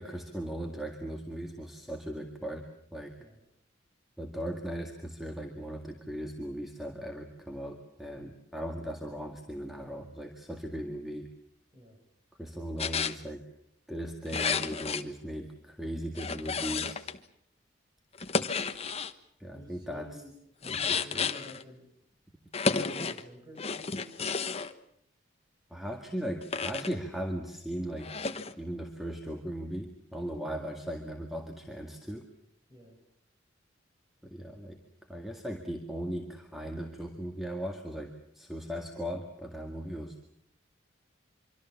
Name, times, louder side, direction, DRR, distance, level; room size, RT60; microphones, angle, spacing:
voice 1, 0.0-2.7 2.9-3.1 4.2-11.3 12.4-13.4 13.9-17.0 19.4-20.2 20.7-21.2 25.7-28.1 28.5-32.3 34.2-34.8 35.1-40.2, equal, ahead, 3 dB, 1.9 m, -38 dB
sound 1, 12.8-13.2 14.3-15.0 16.1-17.2 18.1-19.1 20.6-21.6 22.5-23.2 23.6-24.7 26.4-26.9 28.0-28.5, left 5 dB, 35° left, 1.1 m, -32 dB
voice 2, 19.4-20.3 20.6-21.8 22.6-24.2 32.7-33.0, equal, 25° right, 3 dB, 7.8 m, -50 dB
25.5 x 25.0 x 7.3 m, 0.69 s
head